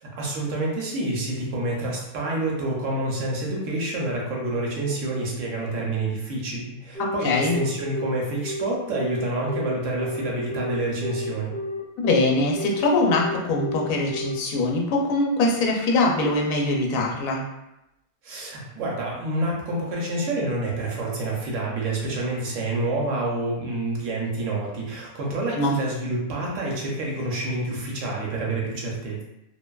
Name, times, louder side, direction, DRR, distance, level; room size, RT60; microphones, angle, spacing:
voice 1, 0.0-11.5 18.2-29.2, right 2 dB, 70° right, -2 dB, 0.9 m, -28 dB
Telephone, 6.9-14.4, left 1 dB, 55° left, 0.6 m, -31 dB
voice 2, 7.2-7.6 12.0-17.4 25.5-25.8, left 2 dB, 75° left, 0 dB, 1.0 m, -22 dB
2.5 x 2.5 x 2.2 m, 0.89 s
omnidirectional pair, 1.5 m